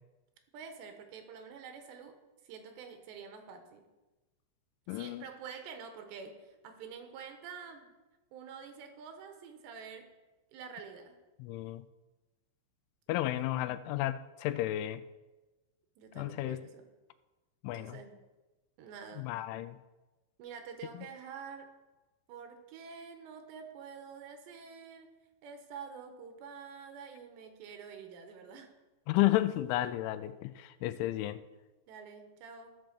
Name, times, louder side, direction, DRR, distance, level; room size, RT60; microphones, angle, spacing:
voice 1, 0.5-2.2 2.4-3.8 4.9-7.9 8.3-10.1 10.5-11.2 13.2-13.4 16.0-16.9 17.7-18.2 18.8-19.4 20.4-21.7 22.3-25.1 25.4-28.7 31.9-32.8, right 6 dB, 75° right, 3.1 m, -47 dB
voice 2, 4.9-5.2 11.4-11.9 13.1-15.0 16.2-16.6 17.6-18.0 19.2-19.8 29.1-31.4, left 15 dB, 85° left, 3.0 m, -32 dB
14.5 x 6.1 x 6.6 m
omnidirectional pair, 5.4 m